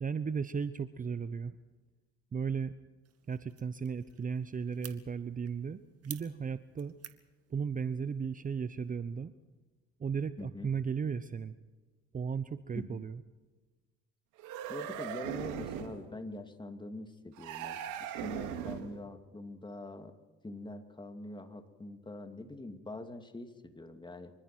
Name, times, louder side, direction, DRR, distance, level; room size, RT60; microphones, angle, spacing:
voice 1, 0.0-1.6 2.3-2.7 3.3-6.9 7.5-9.3 10.0-11.6 12.1-13.2, right 6 dB, 25° right, 14 dB, 0.9 m, -35 dB
sound 1, 3.0-8.9, right 10 dB, 50° right, 2.3 m, -53 dB
voice 2, 10.4-10.7 12.8-13.0 14.7-20.1 20.4-24.3, left 2 dB, 15° left, 7 dB, 2.7 m, -44 dB
sound 2, 14.4-16.0 17.4-19.0, right 9 dB, 65° right, 2.7 m, -39 dB
26.5 x 24.5 x 4.6 m, 1.3 s
hypercardioid pair, 65°, 32 cm